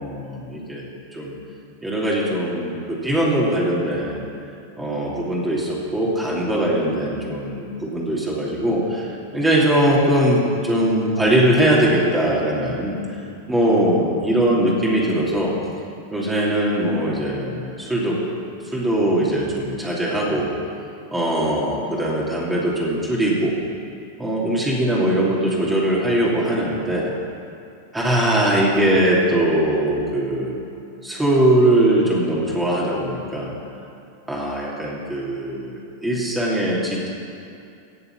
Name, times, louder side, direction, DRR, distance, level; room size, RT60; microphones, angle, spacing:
voice 1, 0.0-1.4 1.8-4.2 4.8-13.0 13.5-15.6 16.1-18.2 18.7-20.5 21.1-23.6 24.2-27.1 27.9-30.5 31.0-33.5 34.3-37.1, right 1 dB, 10° right, -5 dB, 2.8 m, -21 dB
17.0 x 6.8 x 7.6 m, 2.6 s
figure-of-eight pair, 90°, 0 cm